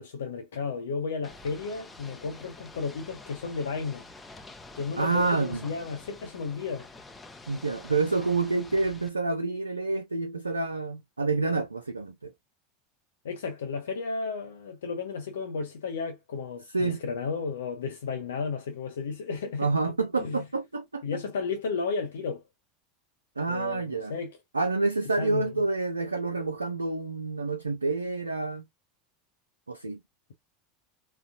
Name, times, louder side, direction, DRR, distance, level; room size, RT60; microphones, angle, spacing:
voice 1, 0.0-4.1 4.7-6.9 13.2-19.7 20.2-20.4 21.0-22.4 23.5-24.3 25.2-25.5, left 5 dB, 70° left, 0.6 m, -33 dB
Ocean / Boat Water vehicle, 1.2-9.1, left 2 dB, 15° left, 0.7 m, -48 dB
voice 2, 5.0-5.7 7.5-12.3 16.7-17.0 19.6-21.0 23.4-24.1 24.5-28.6 29.7-30.0, right 3 dB, 85° right, 0.4 m, -28 dB
4.0 x 2.3 x 2.4 m
figure-of-eight pair, 80°, 0 cm